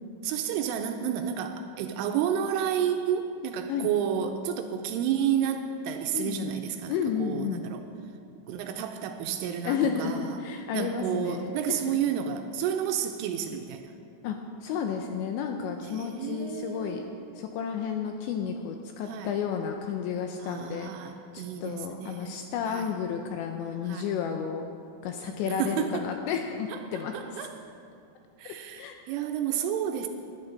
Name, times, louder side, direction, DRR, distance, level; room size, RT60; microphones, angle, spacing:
voice 1, 0.2-7.8 8.5-10.4 10.7-13.9 15.8-17.4 19.1-19.4 20.4-22.9 23.9-24.1 25.3-26.0 26.7-27.5 28.4-30.1, right 9 dB, 80° right, 5 dB, 3.0 m, -31 dB
voice 2, 6.1-6.5 6.9-7.6 9.6-11.8 14.2-17.0 17.4-20.9 21.3-24.6 25.0-27.5 28.5-29.0, left 7 dB, 85° left, 4 dB, 2.6 m, -32 dB
20.0 x 10.5 x 3.9 m, 2.6 s
omnidirectional pair, 5.9 m